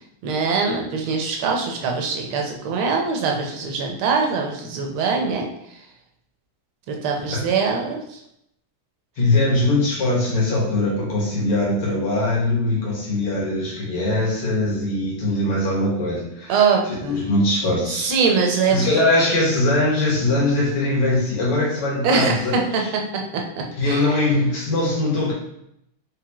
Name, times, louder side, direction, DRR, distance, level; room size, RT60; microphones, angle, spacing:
voice 1, 0.2-5.5 6.9-8.2 16.5-17.2 17.9-18.9 22.0-22.8 23.3-23.4 23.8-24.1, right 5 dB, 75° right, 2 dB, 1.6 m, -22 dB
voice 2, 9.2-16.6 17.0-18.1 18.7-22.5 23.8-25.3, left 2 dB, 80° left, -5 dB, 2.3 m, -21 dB
4.8 x 3.6 x 2.9 m, 0.77 s
omnidirectional pair, 2.4 m